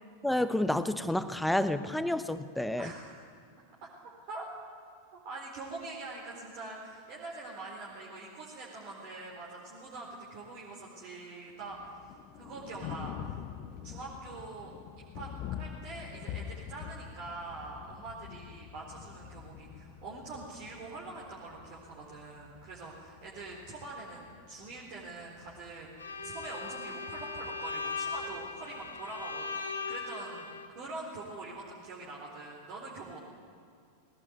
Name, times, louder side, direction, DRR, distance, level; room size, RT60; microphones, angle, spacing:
voice 1, 0.2-2.9, left 1 dB, 5° left, 12 dB, 1.0 m, -29 dB
voice 2, 2.8-3.2 3.8-3.9 4.3-4.5 5.1-12.0 12.4-13.4 13.8-14.7 15.1-15.3 15.6-33.2, right 3 dB, 40° right, -4 dB, 4.2 m, -44 dB
Thunder, 11.6-29.6, left 9 dB, 40° left, 1.0 m, -46 dB
Bowed string instrument, 26.0-30.7, left 4 dB, 75° left, 1.8 m, -39 dB
20.0 x 17.5 x 9.5 m, 2.4 s
figure-of-eight pair, 90°, 0 cm